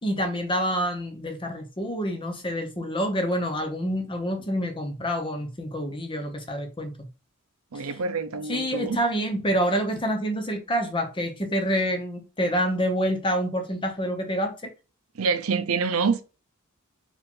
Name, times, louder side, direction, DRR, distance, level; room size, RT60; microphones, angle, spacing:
voice 1, 0.0-7.1 7.7-7.8 8.5-14.7, equal, 25° left, 1.0 m, -27 dB
voice 2, 7.7-9.0 15.1-16.2, right 5 dB, 80° right, 0.6 m, -26 dB
4.9 x 2.6 x 3.8 m
head